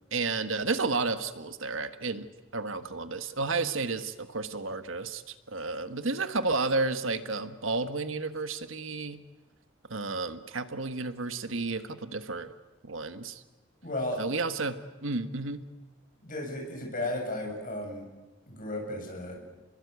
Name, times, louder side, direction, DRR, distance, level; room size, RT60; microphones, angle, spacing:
voice 1, 0.1-2.3 2.5-9.2 9.9-12.5 12.8-13.4 14.2-15.6, right 3 dB, 80° right, 9 dB, 1.5 m, -32 dB
voice 2, 13.8-14.2 16.2-18.0 18.5-19.4, left 1 dB, 45° left, 1 dB, 7.4 m, -34 dB
29.5 x 21.5 x 8.3 m, 1.2 s
head